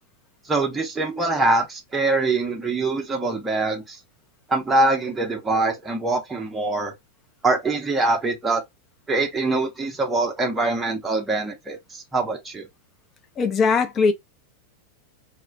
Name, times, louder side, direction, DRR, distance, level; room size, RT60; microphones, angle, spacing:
voice 1, 0.5-4.0 4.5-6.9 7.4-8.6 9.1-12.7, right 2 dB, 10° right, 0.7 m, -23 dB
voice 2, 13.4-14.1, left 5 dB, 25° left, 0.5 m, -19 dB
2.3 x 2.1 x 3.4 m
figure-of-eight pair, 90°, 0 cm